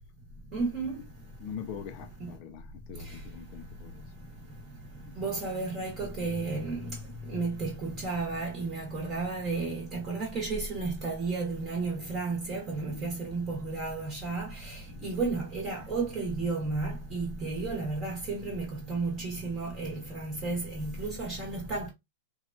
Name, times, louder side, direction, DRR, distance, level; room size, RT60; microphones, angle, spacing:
voice 1, 0.5-1.0 2.2-2.3 3.0-3.1 5.2-7.0 7.2-21.9, right 3 dB, 25° right, 0.9 m, -33 dB
voice 2, 1.4-4.0 5.0-5.1 14.9-15.1, left 7 dB, 35° left, 0.4 m, -43 dB
3.1 x 2.2 x 2.5 m
supercardioid pair, 160°, 0 cm